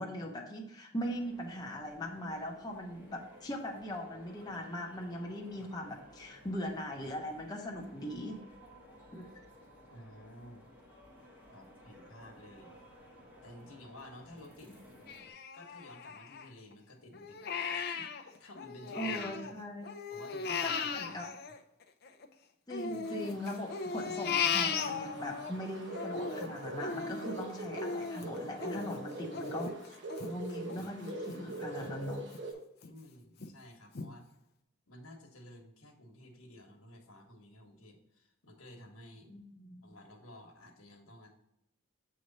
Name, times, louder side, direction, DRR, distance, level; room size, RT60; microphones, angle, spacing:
voice 1, 0.0-8.5 9.1-9.3 19.0-19.9 20.6-21.3 22.7-29.8 30.2-32.2 39.3-39.9, equal, 20° left, -1 dB, 0.8 m, -40 dB
sound 1, 1.0-15.3, equal, 10° right, 1.0 m, -57 dB
voice 2, 9.9-10.6 11.5-12.7 13.4-15.1 15.5-17.5 17.7-19.6 20.1-21.4 22.8-23.0 32.8-34.3 34.9-39.3 39.8-41.3, left 1 dB, 85° left, 2 dB, 1.3 m, -53 dB
Crying sobbing, 15.1-16.7 17.1-19.5 19.8-22.3 22.7-25.5 25.9-31.4 31.8-31.9 32.3-32.9 33.4-33.5 33.9-34.1, left 6 dB, 50° left, 0.5 m, -37 dB
sound 2, 23.0-32.5, right 1 dB, 55° right, 0.9 m, -43 dB
7.7 x 3.2 x 4.0 m, 0.81 s
head